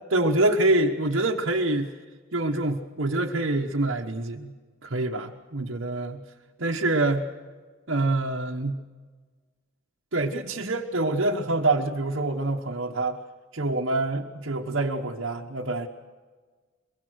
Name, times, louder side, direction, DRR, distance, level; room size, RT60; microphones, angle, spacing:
voice 1, 0.1-1.9 2.3-4.5 4.8-6.2 6.6-7.3 7.9-8.8 10.1-13.2 13.5-15.9, right 2 dB, 65° right, 0 dB, 1.2 m, -26 dB
23.5 x 23.5 x 6.4 m, 1.5 s
head